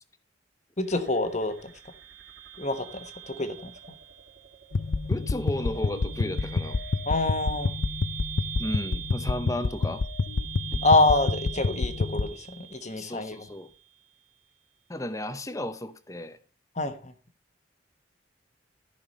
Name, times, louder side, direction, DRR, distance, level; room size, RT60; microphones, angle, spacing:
voice 1, 0.8-1.7 2.6-3.7 7.1-7.7 10.8-13.4 16.7-17.1, left 2 dB, 35° left, 1.2 m, -26 dB
sound 1, 0.8-13.8, right 12 dB, 75° right, 2.6 m, -43 dB
sound 2, 4.7-12.3, left 3 dB, 75° left, 0.6 m, -29 dB
voice 2, 5.1-6.8 8.6-10.0 10.7-10.8 12.9-13.7 14.9-16.4, left 1 dB, 15° left, 0.8 m, -34 dB
14.0 x 5.8 x 5.5 m
head